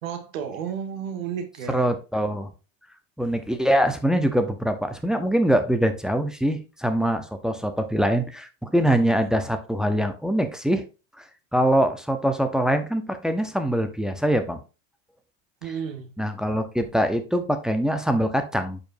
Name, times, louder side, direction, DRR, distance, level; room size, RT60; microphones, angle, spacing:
voice 1, 0.0-1.8 15.6-16.1, right 7 dB, 90° right, 1.8 m, -32 dB
voice 2, 1.7-2.5 3.2-10.8 11.2-11.3 11.5-14.6 16.2-18.8, right 1 dB, ahead, 0.7 m, -23 dB
9.0 x 5.3 x 2.6 m
supercardioid pair, 125°, 39 cm